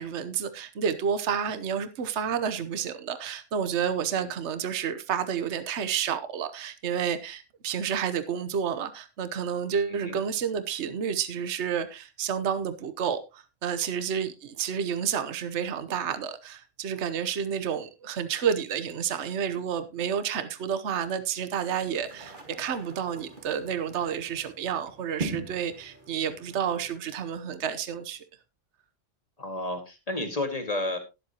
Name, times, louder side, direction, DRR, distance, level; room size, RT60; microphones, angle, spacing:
voice 1, 0.0-28.2, right 7 dB, 65° right, 1.2 m, -30 dB
sound 1, 21.8-27.0, right 3 dB, 40° right, 1.9 m, -41 dB
voice 2, 29.4-31.0, left 2 dB, 30° left, 2.0 m, -32 dB
19.0 x 7.7 x 2.9 m
omnidirectional pair, 1.3 m